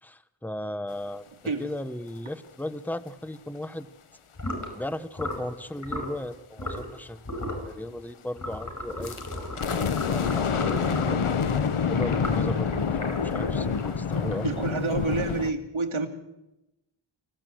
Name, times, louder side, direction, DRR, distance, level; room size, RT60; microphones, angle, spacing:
voice 1, 0.0-1.2 1.6-3.9 4.7-7.2 7.7-9.6 10.1-11.3 11.9-14.6, left 1 dB, 5° left, 12 dB, 1.0 m, -36 dB
sound 1, 4.4-4.7 5.2-5.5 5.8-6.1 6.6-7.0 7.2-7.7 8.4-11.2 11.9-14.7, left 1 dB, 35° left, 4.7 m, -35 dB
sound 2, 9.0-15.5, left 6 dB, 80° left, 1.1 m, -27 dB
voice 2, 14.4-16.1, right 3 dB, 70° right, 4 dB, 2.7 m, -28 dB
25.0 x 16.0 x 7.8 m, 0.95 s
wide cardioid pair, 75°, 49 cm